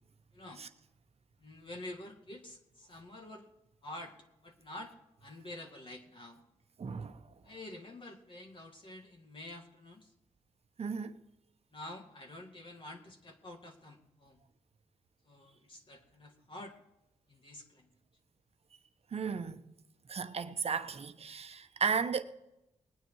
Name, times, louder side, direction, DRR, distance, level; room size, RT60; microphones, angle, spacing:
voice 1, 1.4-3.5 3.8-4.1 4.4-4.9 5.2-6.4 7.4-10.1 11.7-14.4 15.2-16.7 17.3-17.9, left 1 dB, 40° left, 2.3 m, -48 dB
voice 2, 6.8-7.2 10.8-11.1 19.1-19.6 20.1-22.2, right 6 dB, 55° right, 1.1 m, -34 dB
21.0 x 9.1 x 4.8 m
cardioid pair, 70°, 13 cm